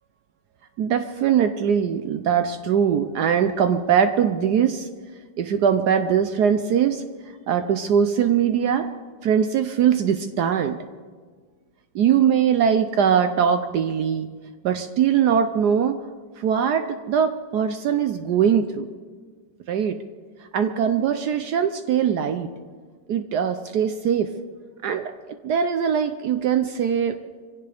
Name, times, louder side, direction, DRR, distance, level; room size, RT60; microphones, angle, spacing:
voice 1, 0.8-4.9 5.4-7.0 7.5-8.9 9.2-10.8 11.9-14.3 14.6-16.0 16.4-18.9 19.7-20.0 20.5-22.5 23.1-24.3 24.8-25.1 25.4-27.2, right 8 dB, 70° right, 8 dB, 1.2 m, -21 dB
24.5 x 16.5 x 3.4 m, 1.6 s
omnidirectional pair, 1.9 m